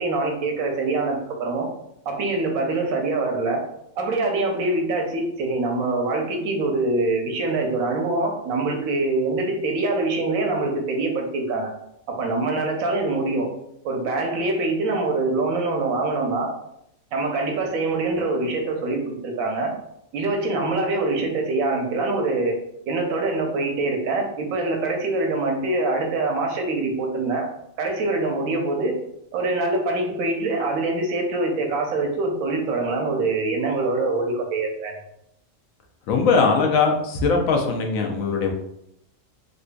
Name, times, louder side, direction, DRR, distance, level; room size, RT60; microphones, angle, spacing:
voice 1, 0.0-1.7 2.1-3.6 4.0-11.7 12.1-13.5 13.8-16.5 17.1-19.7 20.1-22.5 22.9-27.5 27.8-28.9 29.3-34.9, right 2 dB, 85° right, 2 dB, 1.2 m, -24 dB
voice 2, 36.1-38.5, left 4 dB, 80° left, 2 dB, 1.0 m, -20 dB
4.2 x 2.6 x 2.2 m, 0.78 s
omnidirectional pair, 1.4 m